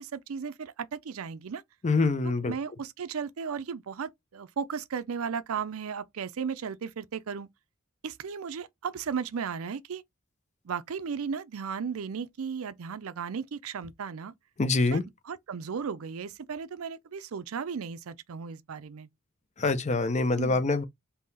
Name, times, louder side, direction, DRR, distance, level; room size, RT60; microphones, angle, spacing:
voice 1, 0.0-1.6 2.2-7.5 8.0-10.0 10.6-14.3 14.9-19.1 20.4-20.7, right 6 dB, 80° right, 0.5 m, -35 dB
voice 2, 1.8-2.5 14.6-15.0 19.6-20.8, left 3 dB, 35° left, 0.6 m, -25 dB
3.8 x 2.8 x 4.0 m
head